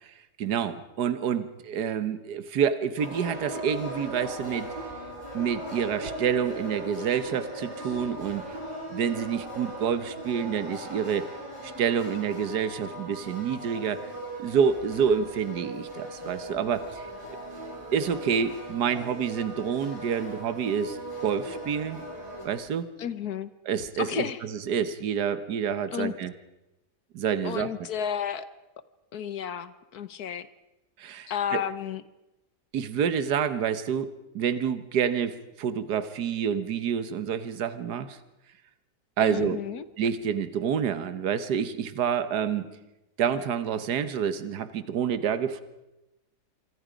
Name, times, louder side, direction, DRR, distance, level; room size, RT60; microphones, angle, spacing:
voice 1, 0.0-4.7 5.3-8.4 8.9-11.4 11.6-14.1 14.4-17.1 17.9-22.0 22.4-22.9 23.7-26.3 27.1-27.7 31.0-31.6 32.7-38.2 39.2-39.6 40.0-42.7 43.2-45.6, right 7 dB, 80° right, 12 dB, 1.7 m, -28 dB
sound 1, 3.0-22.5, right 1 dB, 15° left, 7.5 m, -39 dB
voice 2, 23.0-23.5 24.0-24.4 25.9-26.1 27.4-28.5 29.1-30.5 31.3-32.0 39.2-39.9, left 8 dB, 70° left, 14 dB, 1.5 m, -32 dB
26.5 x 25.0 x 5.1 m, 0.97 s
omnidirectional pair, 1.7 m